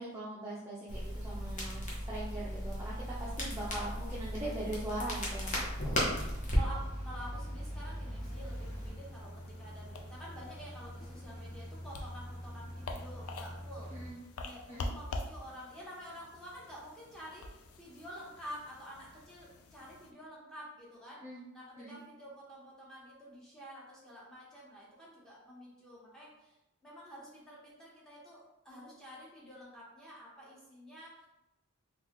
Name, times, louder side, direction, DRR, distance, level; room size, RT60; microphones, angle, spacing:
voice 1, 0.0-2.9 3.2-5.5 5.8-5.9 13.9-14.2 14.7-14.9 21.2-21.4 21.8-21.9, right 1 dB, 15° right, -8 dB, 0.5 m, -41 dB
Crackle, 0.9-8.9, equal, 35° left, 0.8 m, -36 dB
voice 2, 5.5-6.0 6.3-26.6 26.8-31.3, equal, 5° left, -7 dB, 0.9 m, -49 dB
sound 1, 6.3-14.1, equal, 40° right, 0.8 m, -47 dB
sound 2, 8.2-20.1, left 2 dB, 85° left, 0.4 m, -47 dB
3.8 x 2.3 x 3.0 m, 0.93 s
head